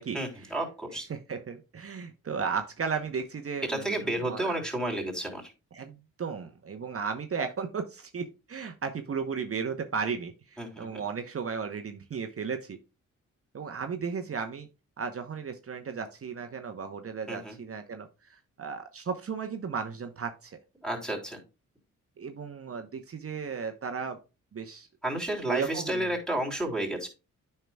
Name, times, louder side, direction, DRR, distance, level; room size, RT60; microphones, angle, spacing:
voice 1, 0.1-1.1 3.7-5.5 10.6-11.0 17.3-17.6 20.8-21.4 25.0-27.1, right 1 dB, ahead, 1 dB, 3.2 m, -31 dB
voice 2, 1.1-4.5 5.7-12.8 13.5-14.7 15.0-20.6 22.2-24.2 24.5-24.9 25.5-26.1, right 6 dB, 45° right, 6 dB, 0.9 m, -35 dB
9.1 x 5.7 x 2.3 m, 0.29 s
supercardioid pair, 50°, 33 cm